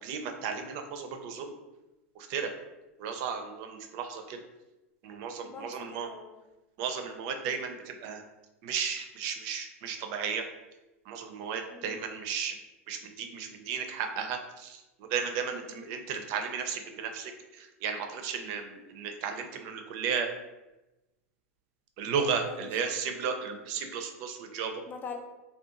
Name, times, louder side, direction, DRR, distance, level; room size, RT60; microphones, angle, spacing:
voice 1, 0.0-1.5 2.2-2.5 3.0-4.4 5.0-6.1 6.8-8.2 8.6-10.4 11.1-12.5 12.9-14.8 15.1-17.3 17.6-20.3 22.0-24.7, right 6 dB, 50° right, 5 dB, 0.4 m, -34 dB
voice 2, 5.4-6.4 11.7-12.0 15.6-15.9 22.5-23.0 24.9-25.2, left 5 dB, 25° left, 4 dB, 0.4 m, -44 dB
2.7 x 2.2 x 2.4 m, 1.0 s
hypercardioid pair, 110°, 7 cm